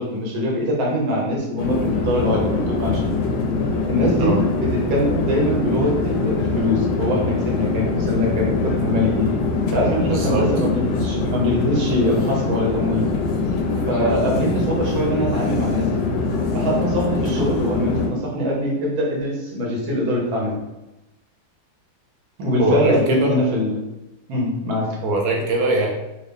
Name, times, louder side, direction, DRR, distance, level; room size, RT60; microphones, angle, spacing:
voice 1, 0.0-3.1 3.9-9.3 9.7-13.1 13.9-16.1 16.5-20.6 22.4-23.8 24.3-24.9, equal, 85° right, -2 dB, 1.8 m, -22 dB
sound 1, 1.6-18.1, left 3 dB, 75° left, 0.9 m, -23 dB
voice 2, 10.1-10.4 22.6-23.3 25.0-25.9, right 2 dB, 60° right, -1 dB, 1.1 m, -21 dB
4.2 x 2.3 x 3.3 m, 0.97 s
omnidirectional pair, 2.1 m